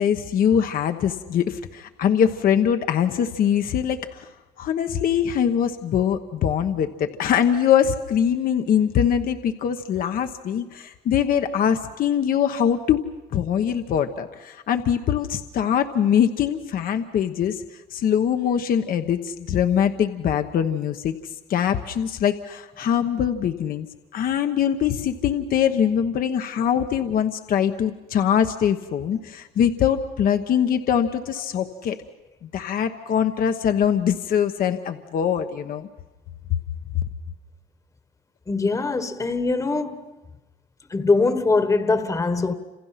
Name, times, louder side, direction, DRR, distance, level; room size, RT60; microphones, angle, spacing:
voice 1, 0.0-4.3 4.6-13.0 13.3-21.2 21.5-23.9 24.1-32.0 32.4-35.9 36.5-36.6 36.9-37.0, left 8 dB, 60° left, 1.1 m, -22 dB
voice 2, 38.5-40.1 40.9-42.5, left 3 dB, 20° left, 1.4 m, -22 dB
30.0 x 27.5 x 5.8 m
cardioid pair, 110°, 17 cm